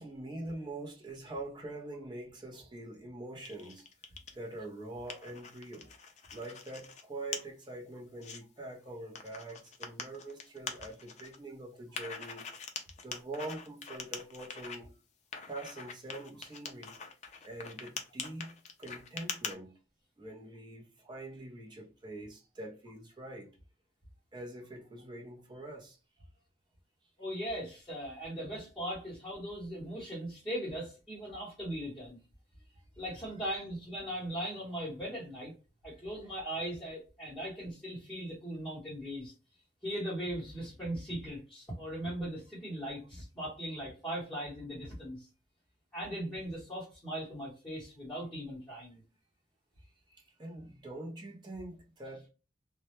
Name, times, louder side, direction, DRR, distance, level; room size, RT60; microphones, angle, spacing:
voice 1, 0.0-3.9 4.3-5.9 6.3-12.5 13.0-14.9 15.5-17.0 17.4-18.5 18.8-19.7 20.2-23.5 24.3-26.0 50.1-52.3, right 2 dB, 25° right, 0.6 m, -44 dB
sound 1, 3.4-4.4 4.8-7.0 7.3-7.4 7.9-8.4 9.2-11.4 11.9-14.8 15.3-19.5, left 6 dB, 40° left, 0.4 m, -43 dB
voice 2, 27.2-32.2 33.0-35.5 35.8-39.3 39.8-45.3 45.9-49.0, equal, 5° left, 0.9 m, -39 dB
2.2 x 2.1 x 2.9 m
head